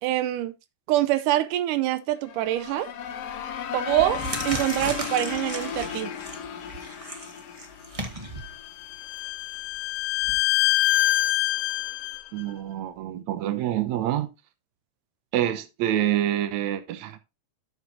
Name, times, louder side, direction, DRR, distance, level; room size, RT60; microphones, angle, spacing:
voice 1, 0.0-0.5 0.9-2.9 3.7-6.1, right 14 dB, 90° right, 2.2 m, -25 dB
sound 1, 2.2-8.9, left 8 dB, 65° left, 1.8 m, -35 dB
sound 2, 3.1-3.4 3.8-10.3, right 1 dB, 40° right, 0.4 m, -37 dB
Bowed string instrument, 8.4-12.2, left 16 dB, 85° left, 2.2 m, -25 dB
voice 2, 12.3-14.3 15.3-17.2, right 12 dB, 70° right, 2.2 m, -26 dB
13.0 x 6.3 x 2.7 m
omnidirectional pair, 3.6 m